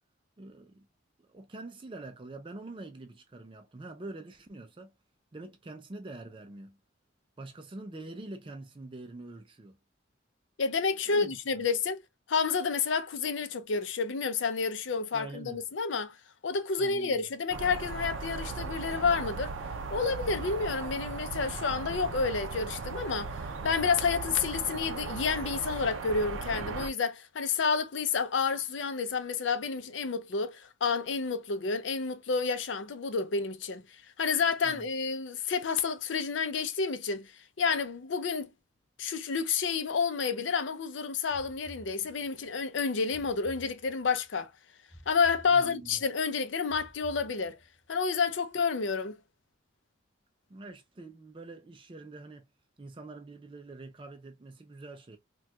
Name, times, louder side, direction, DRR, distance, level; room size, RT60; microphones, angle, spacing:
voice 1, 0.4-0.9 1.3-4.9 5.3-6.8 7.4-9.8 11.1-11.4 15.1-15.6 16.8-17.3 34.6-34.9 45.5-46.0 50.5-52.5 52.8-55.2, right 2 dB, 25° right, 0.4 m, -45 dB
voice 2, 10.6-12.0 12.3-16.1 16.4-19.5 19.9-23.4 23.6-33.8 34.2-37.3 37.6-38.5 39.0-44.5 45.1-47.6 47.9-49.2, left 5 dB, 75° left, 0.5 m, -30 dB
sound 1, 17.5-26.9, right 4 dB, 85° right, 0.5 m, -37 dB
sound 2, 41.3-42.5 43.1-44.3 44.9-46.1 46.7-47.8, equal, 10° left, 1.1 m, -53 dB
4.2 x 2.3 x 2.2 m
head